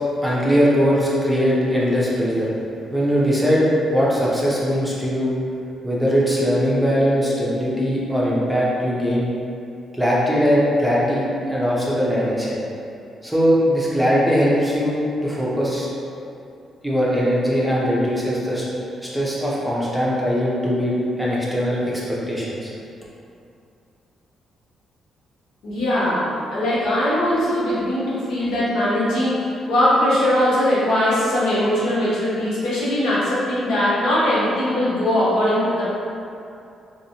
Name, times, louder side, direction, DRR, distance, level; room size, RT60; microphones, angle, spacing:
voice 1, 0.2-2.5 2.9-5.3 5.8-9.3 9.9-11.2 11.5-12.6 13.2-15.9 16.8-18.7 19.0-22.7, equal, ahead, -7 dB, 0.5 m, -20 dB
voice 2, 25.6-35.9, left 1 dB, 90° left, -9 dB, 1.0 m, -20 dB
3.0 x 2.9 x 2.7 m, 2.6 s
cardioid pair, 170°, 0 cm